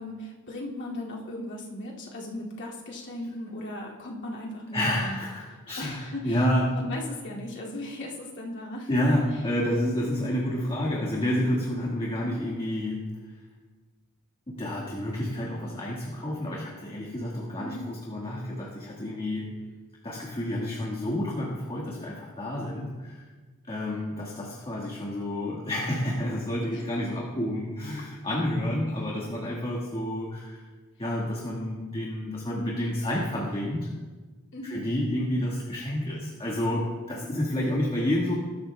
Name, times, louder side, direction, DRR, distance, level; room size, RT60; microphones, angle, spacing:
voice 1, 0.0-5.2 5.8-8.9 17.6-17.9 26.7-26.8 34.5-34.8, left 1 dB, 55° left, -3 dB, 2.3 m, -37 dB
voice 2, 4.7-6.7 8.9-13.4 14.5-19.5 20.0-23.3 23.7-30.6 31.0-33.9 34.6-38.3, left 1 dB, 25° left, -3 dB, 1.6 m, -29 dB
20.5 x 12.5 x 2.3 m, 1.4 s
head